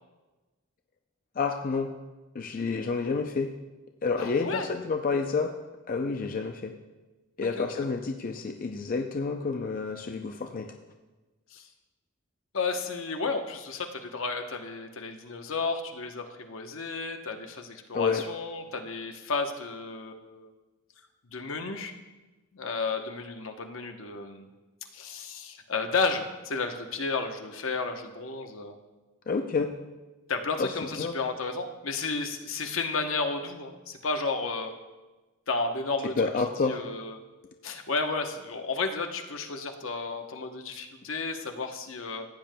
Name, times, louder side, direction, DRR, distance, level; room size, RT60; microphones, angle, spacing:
voice 1, 1.4-1.9 2.3-3.5 4.0-5.5 5.9-6.7 7.4-10.7 17.9-18.2 29.3-29.7 30.6-30.7 31.0-31.1 36.2-36.8, left 4 dB, 45° left, 4 dB, 0.5 m, -29 dB
voice 2, 4.2-4.7 7.6-7.9 11.5-11.7 12.5-20.5 21.3-21.9 22.5-24.5 24.9-28.8 30.3-34.7 35.5-36.2 36.6-37.2 37.6-42.3, left 4 dB, 70° left, 5 dB, 0.9 m, -32 dB
15.0 x 9.1 x 2.2 m, 1.2 s
head